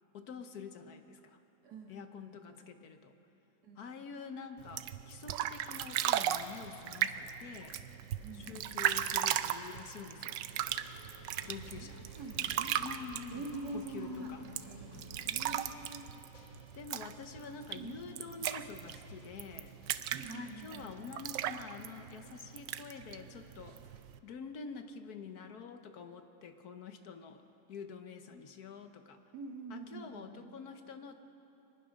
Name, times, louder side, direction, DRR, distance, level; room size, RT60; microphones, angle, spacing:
voice 1, 0.1-1.4 1.9-3.1 3.8-7.8 8.3-10.4 11.4-12.0 12.8-13.5 13.7-14.4 16.7-19.8 20.3-27.4 27.7-29.2 29.7-31.1, left 6 dB, 60° left, 7 dB, 1.3 m, -47 dB
voice 2, 1.6-2.6 3.6-3.9 8.2-8.6 11.4-12.8 13.3-16.1 17.7-18.0 20.1-21.1 29.3-30.5, right 2 dB, 55° right, 1 dB, 2.4 m, -46 dB
sound 1, 4.6-24.2, right 11 dB, 75° right, 1.3 m, -37 dB
sound 2, 10.5-20.5, left 2 dB, 80° left, 3.0 m, -57 dB
23.5 x 19.5 x 6.3 m, 2.9 s
omnidirectional pair, 2.0 m